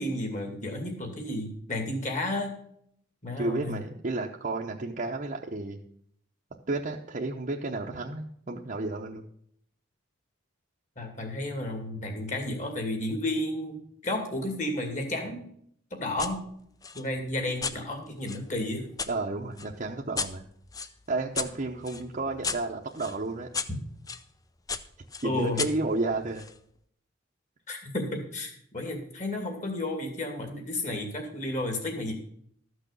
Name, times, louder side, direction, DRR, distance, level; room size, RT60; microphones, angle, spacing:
voice 1, 0.0-2.5 3.2-3.8 11.0-13.8 14.0-15.5 15.9-16.4 16.9-18.9 25.2-25.6 27.7-32.1, left 1 dB, 40° left, 4 dB, 2.4 m, -32 dB
voice 2, 3.4-5.8 6.7-9.2 19.1-20.4 21.1-23.5 25.2-26.5, right 2 dB, 45° right, -1 dB, 0.8 m, -32 dB
sound 1, 16.2-16.4 16.8-19.1 19.6-24.2 24.7-26.6, left 5 dB, 20° left, 0.5 m, -36 dB
13.0 x 6.2 x 6.8 m, 0.66 s
head